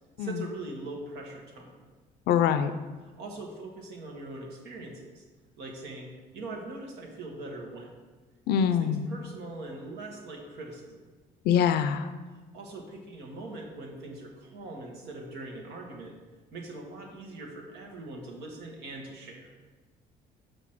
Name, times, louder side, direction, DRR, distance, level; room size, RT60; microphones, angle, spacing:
voice 1, 0.2-1.9 3.0-5.2 5.6-7.9 8.5-11.0 12.5-16.2 16.5-19.5, right 2 dB, 80° right, 1 dB, 1.6 m, -42 dB
voice 2, 2.3-2.7 8.5-9.1 11.4-12.1, left 8 dB, 75° left, 11 dB, 0.5 m, -24 dB
6.1 x 5.1 x 6.0 m, 1.3 s
cardioid pair, 110°, 17 cm